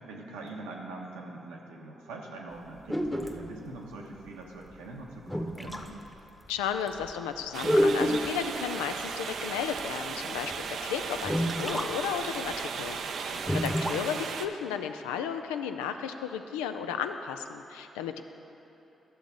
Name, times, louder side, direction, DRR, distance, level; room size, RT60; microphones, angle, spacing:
voice 1, 0.0-5.9 13.3-13.6, right 2 dB, 85° right, -1 dB, 1.0 m, -43 dB
sound 1, 2.9-3.5 4.7-4.8 5.3-5.9 6.5-6.6 6.9-7.0 7.6-8.4 9.8-9.9 10.5-10.6 11.2-11.9 12.2-12.3 12.5-12.6 13.4-14.0, equal, 5° left, 0.9 m, -28 dB
voice 2, 6.5-18.2, left 8 dB, 90° left, 7 dB, 0.3 m, -34 dB
sound 2, 7.5-14.5, right 6 dB, 70° right, 0.4 m, -36 dB
12.0 x 7.3 x 3.8 m, 3.0 s
hypercardioid pair, 45°, 0 cm